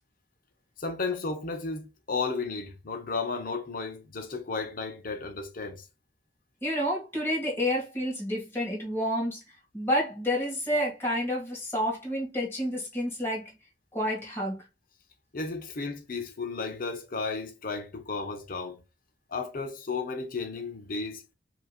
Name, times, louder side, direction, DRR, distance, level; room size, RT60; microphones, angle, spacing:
voice 1, 0.8-5.8 15.3-18.8 19.3-21.2, left 4 dB, 50° left, 0.8 m, -33 dB
voice 2, 6.6-9.4 9.7-13.5 13.9-14.6, equal, 15° left, 1.9 m, -29 dB
5.4 x 2.9 x 2.4 m
head